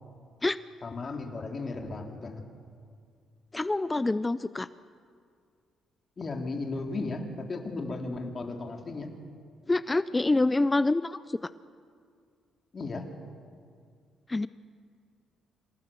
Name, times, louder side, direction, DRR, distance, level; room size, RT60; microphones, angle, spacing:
voice 1, 0.8-2.4 6.2-9.1 12.7-13.0, left 3 dB, 40° left, 2 dB, 3.0 m, -35 dB
voice 2, 3.5-4.7 9.7-11.4 14.3-14.5, left 2 dB, 20° left, 15 dB, 0.5 m, -26 dB
27.0 x 17.0 x 7.0 m, 2.2 s
cardioid pair, 90°, 0 cm